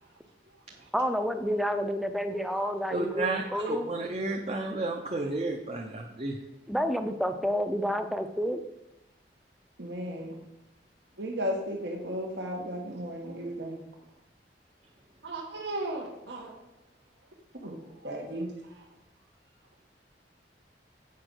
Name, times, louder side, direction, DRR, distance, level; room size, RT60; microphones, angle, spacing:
voice 1, 0.9-3.9 6.7-8.6, equal, ahead, 8 dB, 0.6 m, -29 dB
voice 2, 2.3-2.7 3.4-3.7 9.8-10.4 11.2-13.8 15.2-16.5 17.6-17.7 18.0-18.8, equal, 75° right, 0 dB, 1.5 m, -35 dB
voice 3, 2.9-3.4 3.7-6.4, right 2 dB, 35° right, 1 dB, 0.7 m, -32 dB
8.4 x 5.3 x 6.3 m, 0.91 s
head